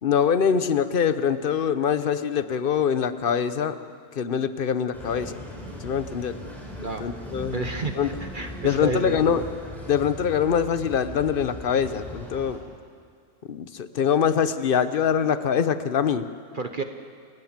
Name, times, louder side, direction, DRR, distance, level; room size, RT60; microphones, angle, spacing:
voice 1, 0.0-3.8 4.1-5.4 5.8-6.4 7.0-7.7 7.9-8.1 8.6-9.5 9.9-12.6 13.4-16.3, left 7 dB, 50° left, 12 dB, 1.0 m, -24 dB
sound 1, 4.9-12.6, equal, ahead, 5.2 m, -39 dB
voice 2, 7.5-9.4 16.5-16.8, right 3 dB, 45° right, 6 dB, 1.1 m, -31 dB
29.0 x 17.5 x 7.4 m, 2.2 s
omnidirectional pair, 1.3 m